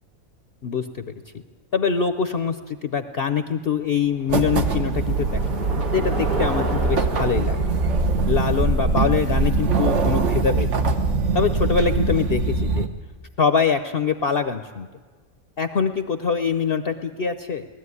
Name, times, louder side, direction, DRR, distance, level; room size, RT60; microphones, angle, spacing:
voice 1, 0.6-1.1 1.7-5.4 5.7-7.6 8.3-10.9 11.3-12.9 13.4-14.9 15.6-17.7, left 6 dB, 50° left, 9 dB, 0.9 m, -24 dB
Bicycle, 4.0-10.5, right 2 dB, 85° right, 2.0 m, -33 dB
sound 1, 4.3-12.9, right 3 dB, 60° right, 1.4 m, -22 dB
20.0 x 13.5 x 9.6 m, 1.4 s
omnidirectional pair, 1.4 m